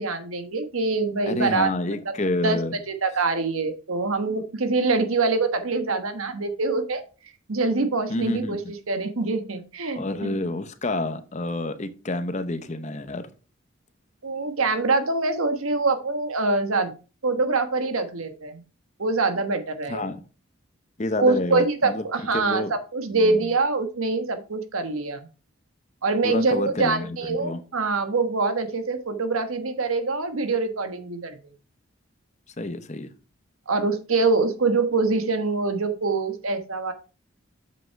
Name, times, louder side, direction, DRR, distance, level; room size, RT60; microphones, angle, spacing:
voice 1, 0.0-1.7 2.4-2.6 2.9-7.0 7.5-10.3 14.2-16.9 17.2-18.6 19.0-20.0 21.2-25.3 26.0-31.4 33.7-36.9, right 3 dB, 90° right, 8 dB, 1.3 m, -24 dB
voice 2, 1.3-2.8 8.1-8.6 10.0-13.3 19.9-20.2 21.0-22.1 22.3-22.7 23.1-23.5 26.2-27.6 32.6-33.1, left 2 dB, 35° left, 11 dB, 0.8 m, -28 dB
7.6 x 6.3 x 4.5 m, 0.35 s
head